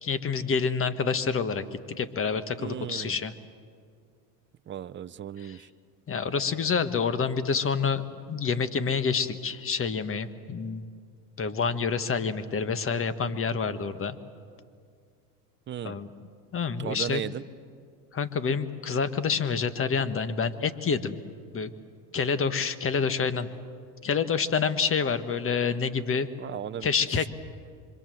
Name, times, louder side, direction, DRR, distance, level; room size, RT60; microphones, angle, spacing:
voice 1, 0.0-3.3 5.4-5.6 6.1-10.9 11.4-14.2 15.8-16.1 16.5-17.2 18.1-21.2 21.5-21.7 22.1-23.5 24.0-26.3 26.8-27.3, left 5 dB, 25° left, 12 dB, 1.5 m, -28 dB
voice 2, 2.6-3.2 4.7-5.7 15.7-16.0 16.8-17.4 26.4-26.9, right 10 dB, 25° right, 13 dB, 0.7 m, -35 dB
26.5 x 24.5 x 7.8 m, 2.2 s
hypercardioid pair, 95°, 48 cm